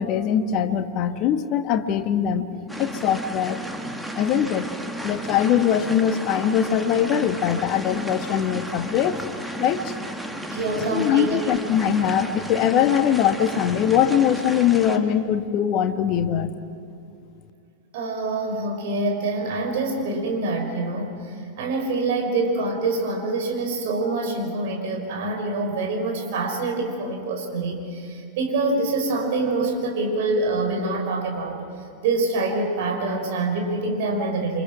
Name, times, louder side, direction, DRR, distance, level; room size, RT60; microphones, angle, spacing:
voice 1, 0.0-3.6 4.1-4.7 5.0-9.2 9.6-9.9 10.9-16.5, left 9 dB, 40° left, 8 dB, 1.5 m, -22 dB
sound 1, 2.7-15.0, right 1 dB, 5° right, 1.9 m, -33 dB
voice 2, 10.5-11.5 17.9-31.6 32.0-34.6, right 2 dB, 50° right, 3 dB, 5.4 m, -25 dB
29.0 x 25.5 x 6.2 m, 2.5 s
figure-of-eight pair, 90°, 0 cm